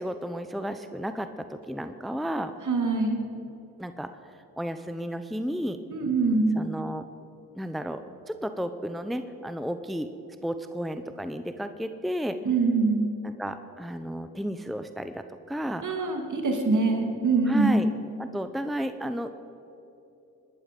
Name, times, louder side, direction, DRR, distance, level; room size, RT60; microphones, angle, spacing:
voice 1, 0.0-2.5 3.8-4.1 4.6-5.8 6.6-7.1 7.6-8.0 8.3-10.1 10.4-12.4 13.2-15.8 17.5-17.9 18.2-19.4, equal, ahead, 9 dB, 0.8 m, -32 dB
voice 2, 2.7-3.2 5.9-6.6 12.4-13.1 15.8-17.9, right 3 dB, 55° right, 3 dB, 2.8 m, -24 dB
19.0 x 12.0 x 5.3 m, 3.0 s
supercardioid pair, 55°, 37 cm